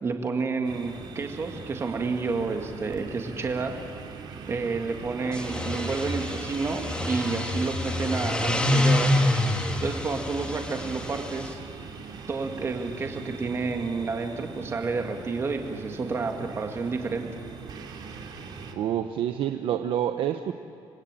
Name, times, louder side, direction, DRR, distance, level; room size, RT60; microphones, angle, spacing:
voice 1, 0.0-3.8 4.5-11.6 12.3-17.3, right 4 dB, 30° right, 4 dB, 1.9 m, -30 dB
sound 1, 0.6-18.7, right 5 dB, 55° right, 2.8 m, -41 dB
sound 2, 5.2-11.5, left 1 dB, 10° left, 2.3 m, -27 dB
voice 2, 18.7-20.5, right 10 dB, 75° right, 7 dB, 1.0 m, -28 dB
27.5 x 20.5 x 9.1 m, 2.5 s
cardioid pair, 170°, 9 cm